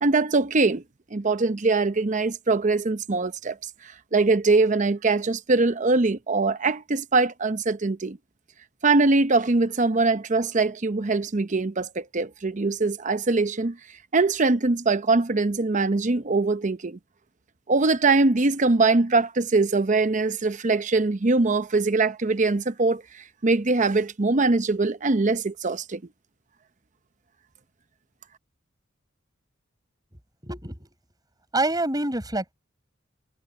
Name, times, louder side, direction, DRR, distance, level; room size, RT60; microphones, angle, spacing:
voice 1, 0.0-0.8 1.1-3.5 4.1-8.2 8.8-13.8 14.1-17.0 17.7-23.0 23.4-26.0, right 3 dB, 40° right, 0.8 m, -22 dB
voice 2, 30.4-30.9 31.5-32.5, right 2 dB, 20° right, 6.8 m, -26 dB
head